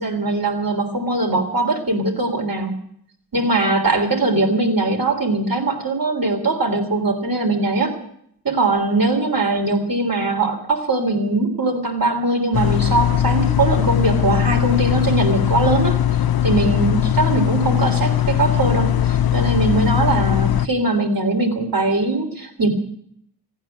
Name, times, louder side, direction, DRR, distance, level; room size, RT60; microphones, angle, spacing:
voice 1, 0.0-2.7 3.3-7.9 8.4-16.0 16.4-22.7, right 2 dB, 60° right, 4 dB, 3.4 m, -21 dB
sound 1, 12.5-20.7, left 11 dB, 65° left, 0.7 m, -19 dB
16.5 x 9.1 x 9.4 m, 0.69 s
cardioid pair, 50°, 39 cm